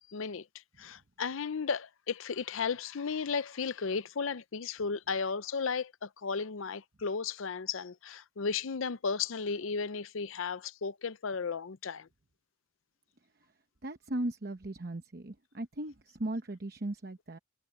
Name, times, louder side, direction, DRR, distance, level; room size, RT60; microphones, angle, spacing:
voice 1, 0.1-0.4 0.8-12.1, left 5 dB, 75° left, 0.6 m, -34 dB
voice 2, 13.8-17.4, right 1 dB, 45° right, 0.9 m, -37 dB
head